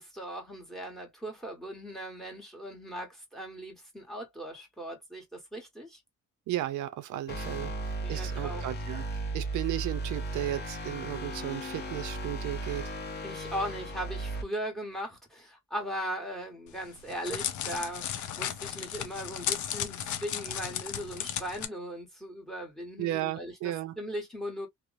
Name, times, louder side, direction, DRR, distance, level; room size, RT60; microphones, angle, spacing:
voice 1, 0.0-6.0 8.0-8.7 13.2-24.7, equal, ahead, 1.2 m, -38 dB
voice 2, 6.5-9.0 9.3-12.8 23.0-23.9, right 14 dB, 75° right, 0.5 m, -34 dB
sound 1, 7.3-14.4, right 2 dB, 35° left, 0.7 m, -35 dB
Crackle, 16.7-21.7, left 10 dB, 75° left, 0.6 m, -35 dB
2.9 x 2.0 x 2.4 m
cardioid pair, 90°, 30 cm